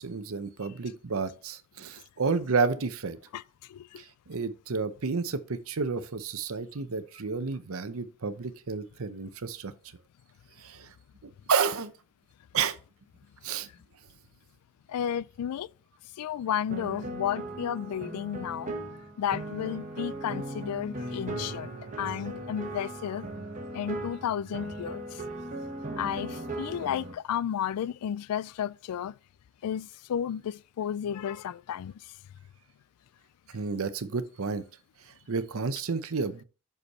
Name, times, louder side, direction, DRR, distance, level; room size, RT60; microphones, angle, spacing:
voice 1, 0.0-3.2 4.0-9.7 10.6-10.9 11.2-11.9 12.5-12.8 13.4-13.7 33.5-34.6 35.3-36.4, right 5 dB, 65° right, 0.7 m, -31 dB
voice 2, 3.7-4.0 14.9-15.7 16.2-18.7 19.2-23.3 23.7-25.2 26.0-29.1 29.6-31.9, left 9 dB, 85° left, 0.3 m, -32 dB
sound 1, 16.7-27.1, right 2 dB, 35° right, 1.1 m, -38 dB
6.3 x 5.3 x 4.2 m
head